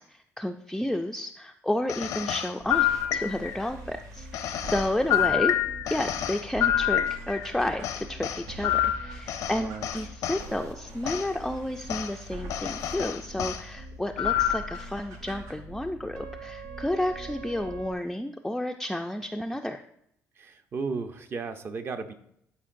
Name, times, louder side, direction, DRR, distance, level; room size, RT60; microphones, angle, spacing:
voice 1, 0.1-5.6 5.9-19.8, left 1 dB, 5° left, 4 dB, 0.3 m, -31 dB
sound 1, 1.9-3.7 4.3-7.5 7.8-10.4 11.0-11.3 11.9-12.1 12.5-13.6 14.2-14.8, left 11 dB, 85° left, 0.6 m, -27 dB
sound 2, 2.6-17.9, right 2 dB, 90° right, 0.9 m, -42 dB
voice 2, 9.6-9.9 20.4-22.1, right 4 dB, 45° right, 8 dB, 0.6 m, -35 dB
11.0 x 4.5 x 2.5 m, 0.73 s
cardioid pair, 110°, 6 cm